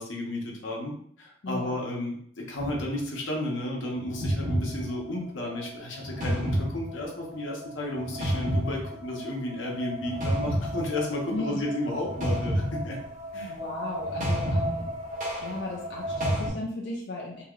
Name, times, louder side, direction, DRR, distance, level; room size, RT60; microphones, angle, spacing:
voice 1, 0.0-13.0 13.3-13.6, left 1 dB, 85° left, -1 dB, 0.9 m, -33 dB
voice 2, 1.4-1.8 11.3-11.6 13.5-14.9 15.4-17.4, left 2 dB, 60° left, -3 dB, 0.5 m, -35 dB
sound 1, 2.6-3.0 4.0-16.5, equal, 40° right, 1.0 m, -31 dB
3.0 x 2.8 x 2.4 m, 0.64 s
head